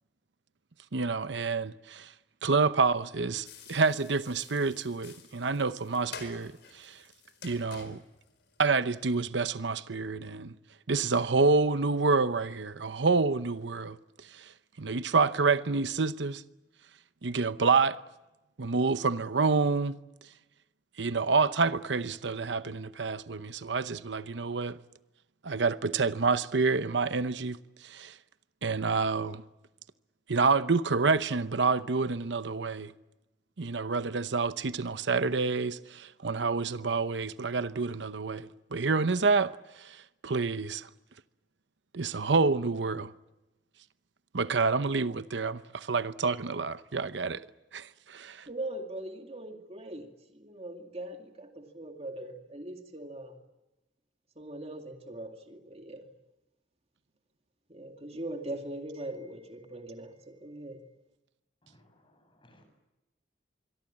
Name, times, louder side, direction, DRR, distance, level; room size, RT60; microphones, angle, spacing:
voice 1, 0.9-2.1 2.4-7.0 7.4-8.0 8.6-10.5 10.9-14.5 14.8-16.4 17.2-18.0 18.6-20.0 21.0-24.8 25.4-28.2 28.6-29.4 30.3-32.9 33.6-40.9 41.9-43.1 44.3-47.4 47.7-48.5, right 4 dB, 80° right, 0.8 m, -28 dB
sound 1, 3.4-9.2, left 5 dB, 65° left, 4.5 m, -49 dB
voice 2, 48.5-53.4 54.4-56.0 57.7-60.8, right 1 dB, 35° right, 2.3 m, -41 dB
voice 3, 61.6-62.6, left 1 dB, 30° left, 7.6 m, -62 dB
26.0 x 23.0 x 8.7 m
head